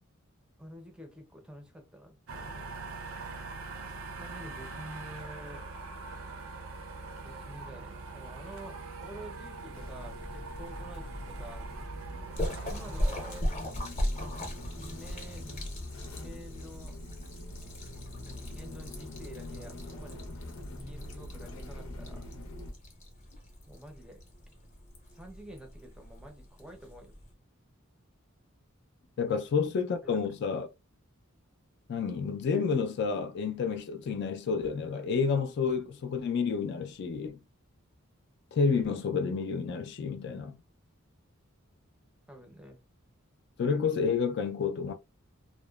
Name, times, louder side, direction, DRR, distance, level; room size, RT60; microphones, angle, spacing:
voice 1, 0.6-2.8 4.2-5.7 7.2-11.7 12.6-13.4 14.8-15.7 16.1-17.0 18.3-20.3 20.6-22.3 23.7-24.2 25.1-27.1 29.3-29.4 30.1-30.2 42.3-42.8, right 1 dB, 5° right, 0.5 m, -49 dB
sound 1, 2.3-13.4, right 3 dB, 70° right, 0.5 m, -43 dB
sound 2, 9.7-22.7, left 1 dB, 85° left, 0.6 m, -43 dB
Splash splatter, 12.3-27.3, equal, 35° left, 0.7 m, -39 dB
voice 2, 29.2-30.7 31.9-37.4 38.5-40.6 43.6-44.9, left 5 dB, 55° left, 0.3 m, -30 dB
2.8 x 2.0 x 2.2 m
head